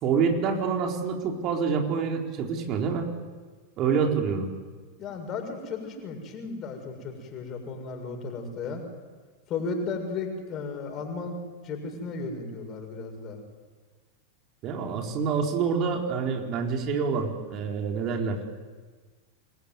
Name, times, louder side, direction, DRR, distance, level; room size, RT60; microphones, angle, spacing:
voice 1, 0.0-3.1 3.8-4.5 14.6-18.4, right 6 dB, 35° right, 2 dB, 4.2 m, -27 dB
voice 2, 5.0-8.8 9.5-11.4 11.6-13.4, left 4 dB, 30° left, 5 dB, 7.0 m, -34 dB
27.5 x 22.5 x 9.7 m, 1.4 s
figure-of-eight pair, 90°, 0 cm